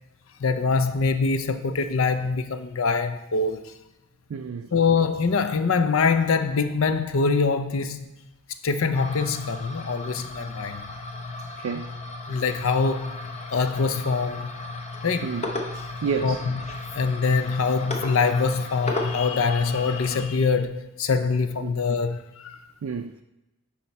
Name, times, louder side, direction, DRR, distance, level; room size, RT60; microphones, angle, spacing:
voice 1, 0.4-3.6 4.7-8.1 8.6-10.9 12.3-13.2 13.5-14.5 15.0-15.3 16.2-16.6 16.9-22.6, left 4 dB, 70° left, 0.5 m, -24 dB
voice 2, 4.3-4.7 11.6-11.9 15.2-15.4 16.0-16.5 21.6-21.7 22.8-23.2, right 6 dB, 65° right, 0.4 m, -30 dB
sound 1, 8.9-20.2, left 2 dB, 30° left, 0.7 m, -34 dB
10.0 x 4.2 x 4.2 m
head